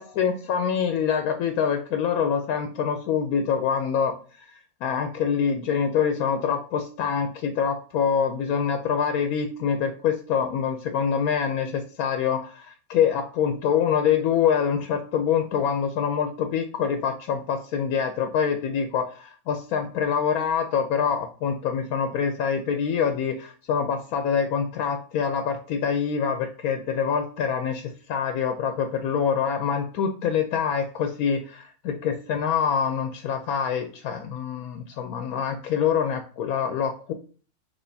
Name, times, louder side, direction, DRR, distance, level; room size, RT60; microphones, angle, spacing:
voice 1, 0.0-4.5 4.8-37.1, left 7 dB, 90° left, 6 dB, 1.1 m, -25 dB
6.1 x 3.2 x 2.7 m, 0.41 s
omnidirectional pair, 1.5 m